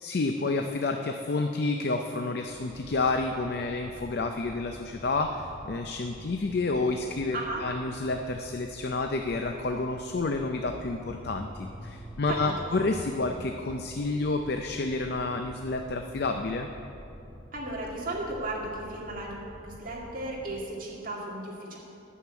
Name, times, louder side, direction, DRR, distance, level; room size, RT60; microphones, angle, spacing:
voice 1, 0.0-16.7, left 3 dB, 55° left, 5 dB, 0.5 m, -30 dB
sound 1, 2.4-20.7, equal, 10° right, 1.2 m, -47 dB
voice 2, 7.3-7.6 12.3-12.7 17.5-21.8, right 2 dB, 45° right, -4 dB, 2.1 m, -35 dB
10.0 x 6.6 x 8.3 m, 2.6 s
head